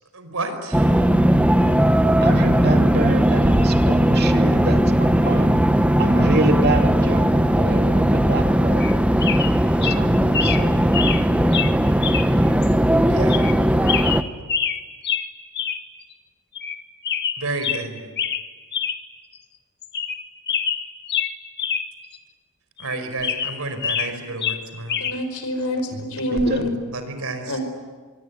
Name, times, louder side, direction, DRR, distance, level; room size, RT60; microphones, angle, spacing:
voice 1, 0.1-0.9 13.0-13.5 17.4-18.0 22.8-25.0 26.9-27.6, right 2 dB, 75° right, 8 dB, 5.0 m, -30 dB
sound 1, 0.7-14.2, equal, 5° right, 1.0 m, -18 dB
voice 2, 2.2-5.5 6.0-8.9 9.8-10.9 25.9-26.0 26.3-26.7, right 2 dB, 45° right, 4 dB, 2.7 m, -27 dB
sound 2, 8.8-8.9 9.2-9.5 9.8-10.0 10.3-10.6 10.9-11.2 11.5-11.7 12.0-12.3 12.6-12.7 13.3-13.6 13.9-14.8 15.0-15.3 15.5-15.8 16.1-16.2 16.5-16.8 17.0-17.8 18.2-18.4 18.7-19.0 19.3-19.4 19.8-20.2 20.5-21.8 22.1-22.2 22.8-24.1 24.4-25.2 26.4-26.6, left 7 dB, 50° left, 1.9 m, -25 dB
voice 3, 25.0-26.6 27.5-27.6, equal, 75° left, 6 dB, 5.0 m, -26 dB
24.5 x 24.5 x 9.5 m, 1.4 s
head